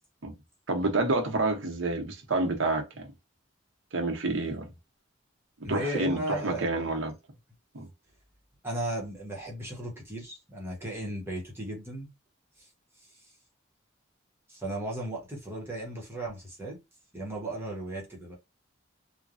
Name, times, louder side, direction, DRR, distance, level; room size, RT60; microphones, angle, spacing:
voice 1, 0.7-3.1 3.9-4.7 5.7-7.1 7.7-7.9, right 2 dB, 80° right, 0.8 m, -28 dB
voice 2, 5.6-6.9 8.6-12.1 12.6-12.7 13.2-13.3 14.5-16.8 17.1-18.4, right 1 dB, 10° right, 1.0 m, -36 dB
3.2 x 2.2 x 2.5 m
head